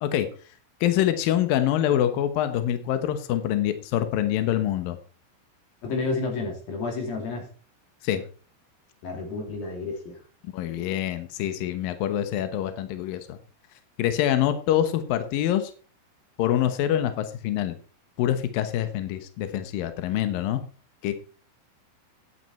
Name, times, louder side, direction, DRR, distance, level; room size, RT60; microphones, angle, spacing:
voice 1, 0.8-5.0 8.0-8.3 10.5-13.4 14.0-15.7 16.4-17.8 18.2-20.6 21.0-21.1, left 11 dB, 85° left, 10 dB, 2.0 m, -25 dB
voice 2, 5.8-7.5 9.0-10.2, left 3 dB, 50° left, 3 dB, 4.2 m, -30 dB
12.0 x 9.5 x 4.4 m, 0.39 s
omnidirectional pair, 5.7 m